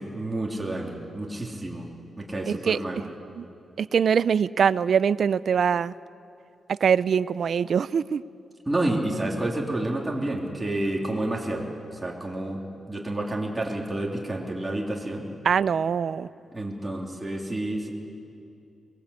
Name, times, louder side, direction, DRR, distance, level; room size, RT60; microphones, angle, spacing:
voice 1, 0.0-1.9 2.2-3.0 8.6-11.7 11.9-12.6 12.9-15.3 16.5-17.9, right 1 dB, 15° right, -2 dB, 3.4 m, -29 dB
voice 2, 2.5-2.8 3.4-3.5 3.8-5.9 6.7-8.2 15.4-16.3, right 7 dB, 60° right, 18 dB, 0.5 m, -23 dB
23.0 x 21.0 x 8.3 m, 2.6 s
wide cardioid pair, 125°, 0 cm